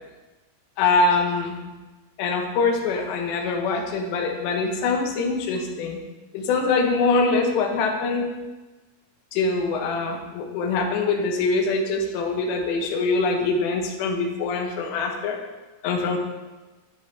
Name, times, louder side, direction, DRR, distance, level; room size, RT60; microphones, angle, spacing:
voice 1, 0.8-1.6 2.2-6.0 6.3-8.3 9.3-15.4 15.8-16.2, left 3 dB, 80° left, 3 dB, 3.1 m, -23 dB
11.0 x 8.5 x 3.2 m, 1.2 s
omnidirectional pair, 5.2 m